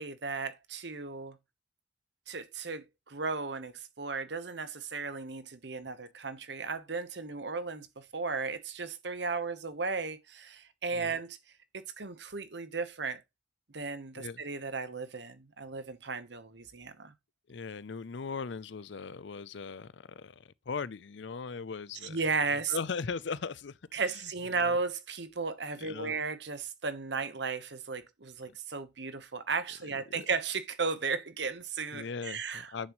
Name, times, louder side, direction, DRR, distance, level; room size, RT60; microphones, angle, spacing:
voice 1, 0.0-1.4 2.3-11.4 12.0-13.2 13.7-17.1 22.0-22.8 23.9-32.7, right 4 dB, 60° right, 1.1 m, -35 dB
voice 2, 17.5-22.2 22.5-24.0 24.5-24.8 25.8-26.2 29.9-30.2 31.9-32.9, left 5 dB, 65° left, 0.5 m, -39 dB
9.0 x 7.3 x 3.1 m
head